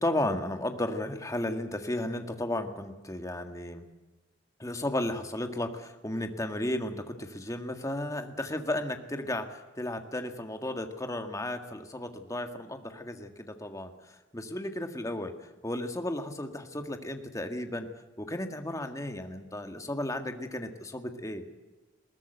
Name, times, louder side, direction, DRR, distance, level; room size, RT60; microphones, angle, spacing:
voice 1, 0.0-3.8 4.6-13.9 14.3-17.9 18.2-21.5, left 1 dB, 15° left, 6 dB, 1.8 m, -34 dB
21.0 x 18.5 x 8.0 m, 1.2 s
head